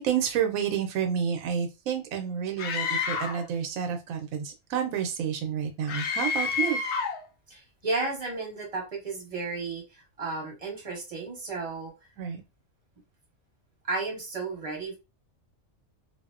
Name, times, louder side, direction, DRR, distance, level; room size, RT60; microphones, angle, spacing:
voice 1, 0.0-6.8 12.2-12.4, right 8 dB, 85° right, 5 dB, 1.0 m, -29 dB
Screaming, 2.6-3.5 5.9-7.2, left 5 dB, 65° left, 0.8 m, -29 dB
voice 2, 7.5-11.9 13.8-15.0, right 3 dB, 30° right, -1 dB, 1.0 m, -33 dB
2.5 x 2.0 x 2.4 m, 0.26 s
omnidirectional pair, 1.4 m